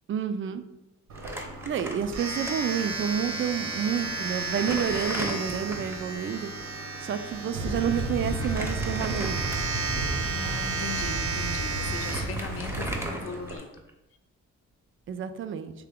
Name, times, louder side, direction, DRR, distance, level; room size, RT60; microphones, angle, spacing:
voice 1, 0.1-0.6 1.7-6.5 7.0-9.5 15.1-15.7, right 8 dB, 45° right, 10 dB, 0.4 m, -29 dB
Domestic sounds home sounds, 1.1-13.6, right 3 dB, 65° right, 1.0 m, -34 dB
Crumpling crinkling, 1.2-2.5 2.8-2.9 3.8-3.9 4.3-6.1 8.3-9.9 10.5-10.6 11.5-11.6 11.8-13.9, right 1 dB, 10° right, 0.7 m, -37 dB
Thunder / Rain, 7.5-13.1, right 2 dB, 90° right, 1.0 m, -32 dB
voice 2, 10.2-13.7, left 5 dB, 50° left, 5 dB, 0.6 m, -38 dB
3.4 x 2.8 x 3.6 m, 0.92 s
cardioid pair, 90°, 30 cm